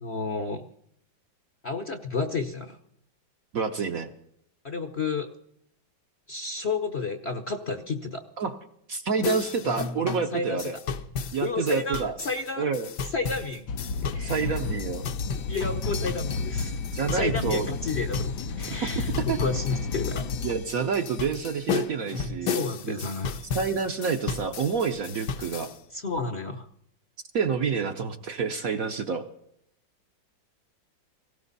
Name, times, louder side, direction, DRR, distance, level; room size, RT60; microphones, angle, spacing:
voice 1, 0.0-0.6 1.6-2.8 4.6-5.3 6.3-8.2 10.3-10.6 11.4-12.7 13.1-13.7 14.1-14.6 15.5-20.2 22.4-23.4 25.9-26.7, left 4 dB, 45° left, 5 dB, 0.9 m, -31 dB
voice 2, 3.5-4.1 8.4-8.5 8.9-10.8 11.3-12.1 12.6-12.9 14.2-15.0 16.8-17.7 18.8-19.0 19.3-19.4 20.4-23.0 23.5-25.7 27.3-29.2, right 5 dB, 55° right, 5 dB, 1.1 m, -28 dB
sound 1, 9.2-25.8, left 6 dB, 65° left, 1.4 m, -35 dB
sound 2, 13.7-20.5, left 4 dB, 85° left, 1.7 m, -32 dB
18.5 x 17.0 x 4.1 m, 0.71 s
omnidirectional pair, 2.1 m